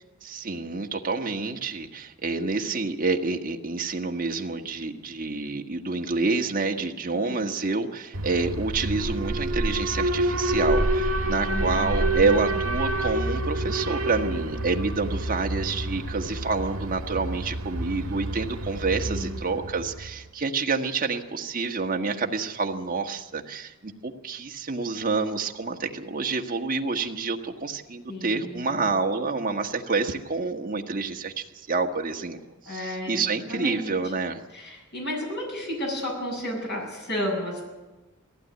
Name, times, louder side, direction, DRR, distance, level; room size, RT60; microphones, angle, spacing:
voice 1, 0.2-32.4 32.7-34.4, right 4 dB, 40° right, 3 dB, 1.4 m, -28 dB
voice 2, 7.1-7.5 11.4-12.6 19.1-19.4 28.1-28.9 32.7-33.9 34.5-37.6, left 1 dB, 50° left, 0 dB, 7.7 m, -33 dB
Alarm, 8.1-20.2, right 1 dB, 80° right, 1.5 m, -28 dB
19.0 x 15.5 x 9.3 m, 1.1 s
head